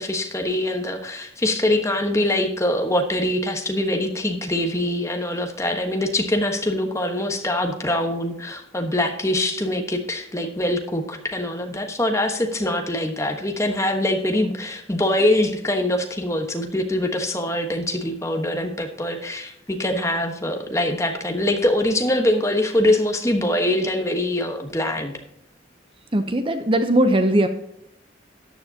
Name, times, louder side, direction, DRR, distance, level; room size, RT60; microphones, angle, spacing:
voice 1, 0.0-25.1, left 1 dB, 15° left, 5 dB, 1.2 m, -23 dB
voice 2, 26.1-27.5, right 1 dB, 25° right, 8 dB, 0.7 m, -19 dB
13.5 x 9.8 x 2.8 m, 0.78 s
head